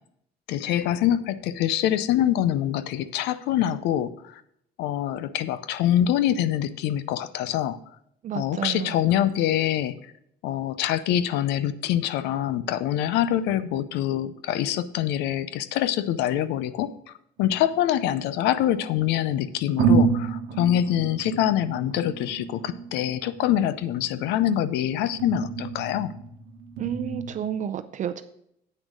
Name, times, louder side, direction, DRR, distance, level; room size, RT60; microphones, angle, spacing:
voice 1, 0.5-4.4 4.8-7.8 8.3-10.0 10.4-16.9 17.4-26.1, left 11 dB, 90° left, 15 dB, 0.6 m, -25 dB
voice 2, 8.2-9.0 26.8-28.2, right 9 dB, 45° right, 10 dB, 0.5 m, -31 dB
sound 1, 17.4-18.7 19.3-19.4 19.8-27.3, right 5 dB, 75° right, 1.0 m, -29 dB
8.5 x 6.2 x 5.1 m, 0.73 s
cardioid pair, 110°, 17 cm